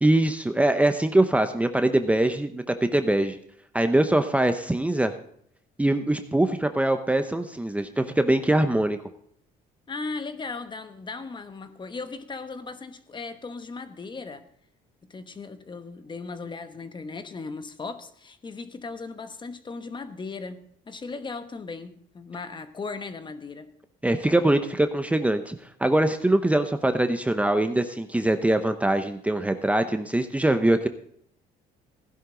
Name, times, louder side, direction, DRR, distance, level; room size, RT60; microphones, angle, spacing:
voice 1, 0.0-2.6 2.9-3.4 3.7-5.1 5.8-9.0 24.0-30.9, right 1 dB, 10° right, 0.8 m, -23 dB
voice 2, 9.9-14.5 15.1-23.7, left 4 dB, 30° left, 1.1 m, -37 dB
16.0 x 11.0 x 3.9 m
cardioid pair, 110°, 17 cm